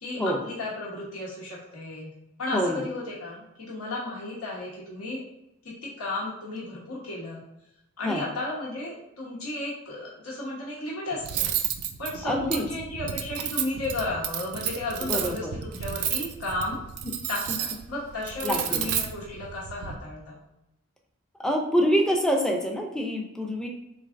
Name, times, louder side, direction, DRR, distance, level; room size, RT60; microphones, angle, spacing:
voice 1, 0.0-2.1 2.4-5.2 5.8-7.4 8.0-11.5 12.0-16.8 17.3-20.4, left 2 dB, 85° left, -4 dB, 1.0 m, -34 dB
voice 2, 2.5-2.9 8.0-8.3 12.2-12.6 15.0-15.5 17.5-17.6 18.4-18.9 21.4-23.7, equal, 5° left, 1 dB, 0.4 m, -26 dB
Cutlery silverware, 11.2-19.9, right 9 dB, 90° right, 0.4 m, -32 dB
3.8 x 3.3 x 2.5 m, 0.87 s
head